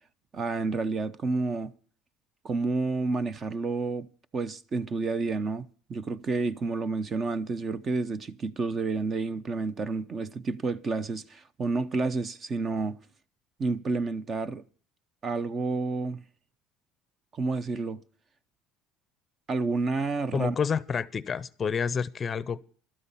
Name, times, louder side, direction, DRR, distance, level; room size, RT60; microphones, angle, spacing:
voice 1, 0.3-1.7 2.4-4.1 4.3-13.0 13.6-14.6 15.2-16.2 17.3-18.0 19.5-20.6, right 3 dB, 30° right, 0.8 m, -30 dB
voice 2, 20.3-22.6, left 6 dB, 25° left, 0.6 m, -29 dB
12.5 x 12.5 x 5.6 m
cardioid pair, 130°, 0 cm